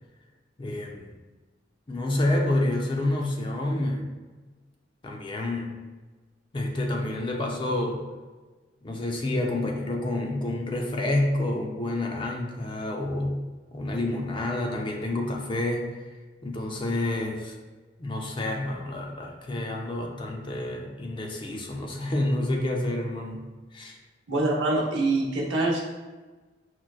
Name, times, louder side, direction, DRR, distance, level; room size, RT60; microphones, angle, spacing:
voice 1, 0.6-1.1 1.9-4.1 5.0-5.8 6.5-8.0 8.8-16.0 16.4-17.6 18.0-24.0, left 1 dB, 25° left, 1 dB, 0.4 m, -29 dB
voice 2, 24.3-25.8, right 2 dB, 75° right, -2 dB, 0.8 m, -24 dB
5.9 x 2.1 x 2.3 m, 1.3 s
head